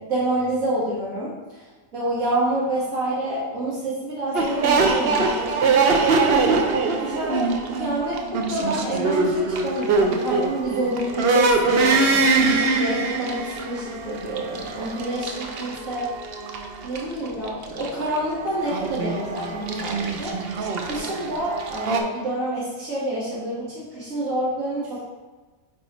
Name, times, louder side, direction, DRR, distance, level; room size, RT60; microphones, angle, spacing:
voice 1, 0.0-1.6 1.9-5.9 6.6-7.4 7.7-12.3 12.7-16.1 16.8-20.3 20.8-25.1, right 1 dB, 85° right, -9 dB, 2.2 m, -28 dB
sound 1, 4.3-22.0, right 3 dB, 55° right, 0.8 m, -23 dB
8.8 x 4.3 x 3.1 m, 1.3 s
omnidirectional pair, 1.4 m